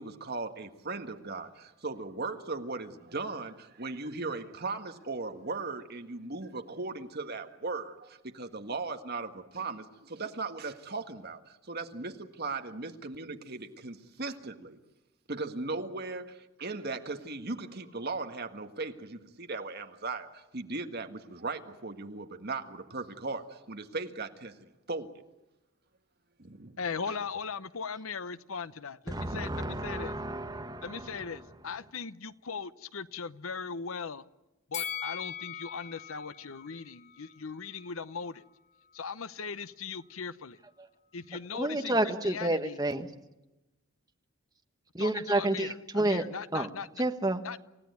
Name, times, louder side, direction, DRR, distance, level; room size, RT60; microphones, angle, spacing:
voice 1, 0.0-14.8 15.3-25.2 26.4-26.8 29.2-29.4, right 3 dB, 45° right, 6 dB, 1.7 m, -38 dB
voice 2, 26.8-30.1 30.8-34.2 34.7-38.4 38.9-40.6 41.1-42.8 45.0-46.9 47.4-47.6, left 5 dB, 70° left, 15 dB, 0.8 m, -39 dB
voice 3, 29.1-31.4 41.5-43.1 44.9-46.2 46.5-46.7 47.0-47.4, right 1 dB, 15° right, 6 dB, 1.4 m, -30 dB
Bell, 34.7-37.9 38.3-38.4, left 8 dB, 35° left, 2.0 m, -41 dB
28.5 x 16.5 x 9.4 m, 1.0 s
head